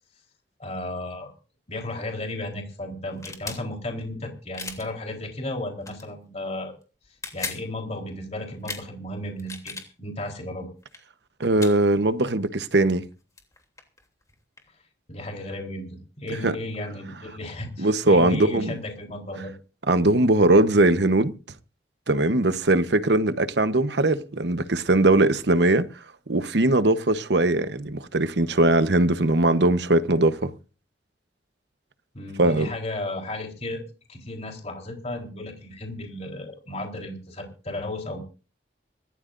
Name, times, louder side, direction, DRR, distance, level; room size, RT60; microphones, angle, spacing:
voice 1, 0.6-1.3 1.7-6.7 7.3-10.7 15.1-15.9 16.2-19.5 32.1-33.8 34.1-38.2, left 1 dB, 35° left, 3.9 m, -34 dB
sound 1, 3.1-3.6 4.5-4.9 5.8-6.0 7.0-7.6 8.6-8.8 9.4-9.9 10.8-11.0 11.6-11.8 13.1-13.2 13.4-14.7, left 3 dB, 20° left, 3.0 m, -36 dB
voice 2, 11.4-13.0 16.4-16.5 17.8-18.8 19.9-21.3 22.1-25.9 26.3-30.5 32.4-32.7, right 2 dB, 70° right, 1.0 m, -20 dB
26.0 x 14.0 x 2.6 m
head